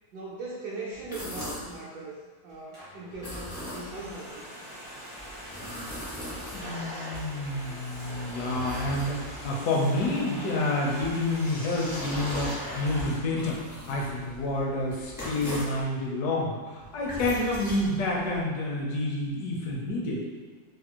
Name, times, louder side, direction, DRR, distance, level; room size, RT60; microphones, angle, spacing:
voice 1, 0.1-4.4, right 2 dB, 75° right, -7 dB, 1.0 m, -39 dB
sound 1, 0.9-1.8 3.1-4.1 5.2-6.9 7.7-9.5 10.9-15.8 16.8-18.4, equal, 25° left, 0.5 m, -40 dB
Domestic sounds home sounds, 2.5-13.2, equal, 35° right, 0.5 m, -40 dB
voice 2, 6.5-20.2, left 2 dB, 70° left, -3 dB, 1.0 m, -29 dB
3.4 x 2.2 x 2.8 m, 1.5 s
omnidirectional pair, 2.1 m